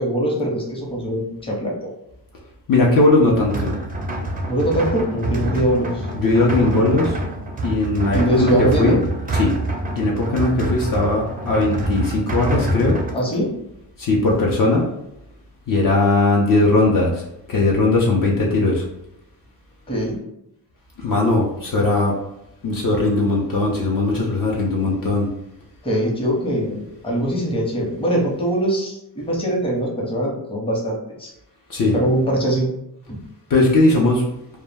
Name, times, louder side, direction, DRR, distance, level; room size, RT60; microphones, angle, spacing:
voice 1, 0.0-1.9 4.5-6.1 8.1-9.0 10.5-10.7 13.1-13.5 19.9-20.2 25.8-31.3 31.9-32.7 33.1-33.2, right 1 dB, 15° left, -2 dB, 0.7 m, -22 dB
voice 2, 2.7-3.7 6.1-7.2 7.6-9.0 9.3-9.5 10.0-13.0 14.0-14.9 15.7-17.2 17.5-18.8 21.0-22.2 22.6-25.3 31.7-32.0 33.5-34.2, left 2 dB, 50° left, -2 dB, 0.6 m, -18 dB
sound 1, 3.3-13.1, right 1 dB, 20° right, 0.4 m, -26 dB
2.2 x 2.1 x 3.3 m, 0.83 s
cardioid pair, 110°, 43 cm